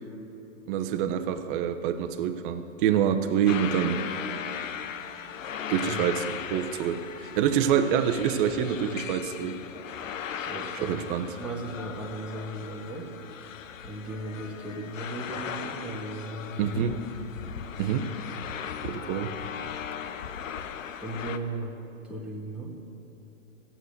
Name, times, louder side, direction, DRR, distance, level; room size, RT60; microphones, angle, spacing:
voice 1, 0.7-4.0 5.7-9.6 10.8-11.4 16.6-17.0 17.8-18.1 18.8-19.3, right 9 dB, 40° right, 7 dB, 1.0 m, -26 dB
sound 1, 3.5-21.4, left 8 dB, 80° left, 0.8 m, -38 dB
voice 2, 5.8-6.1 10.4-13.1 13.8-16.9 21.0-21.7 22.1-22.7, right 1 dB, 5° right, -4 dB, 1.6 m, -36 dB
16.5 x 7.5 x 6.6 m, 3.0 s
hypercardioid pair, 120°, 39 cm